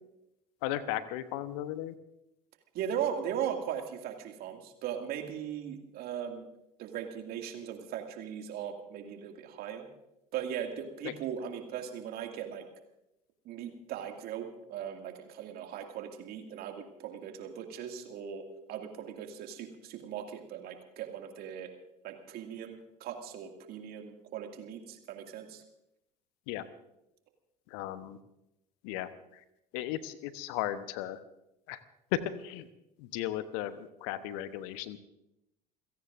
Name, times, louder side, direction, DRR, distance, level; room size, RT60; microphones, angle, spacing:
voice 1, 0.6-1.9 11.0-11.1 26.5-26.6 27.7-28.2 28.8-29.4 29.7-31.2 31.7-31.8 32.1-32.7 33.0-35.0, left 12 dB, 55° left, 13 dB, 1.0 m, -36 dB
voice 2, 2.7-6.5 6.8-9.9 10.3-12.7 13.4-21.7 22.0-25.6, right 9 dB, 50° right, 4 dB, 2.3 m, -38 dB
29.0 x 16.5 x 2.6 m, 0.87 s
figure-of-eight pair, 65°, 21 cm